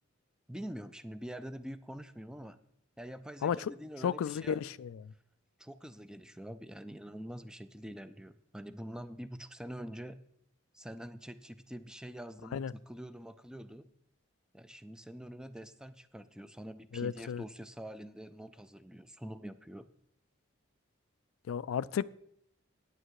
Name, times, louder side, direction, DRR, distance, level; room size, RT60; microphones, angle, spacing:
voice 1, 0.5-2.6 3.0-4.7 5.6-10.2 10.7-13.9 14.5-19.9, equal, 5° right, 0.4 m, -45 dB
voice 2, 3.4-3.7 4.0-5.0 12.5-12.7 16.9-17.4 21.5-22.2, left 8 dB, 80° left, 0.3 m, -33 dB
9.2 x 8.9 x 4.7 m
head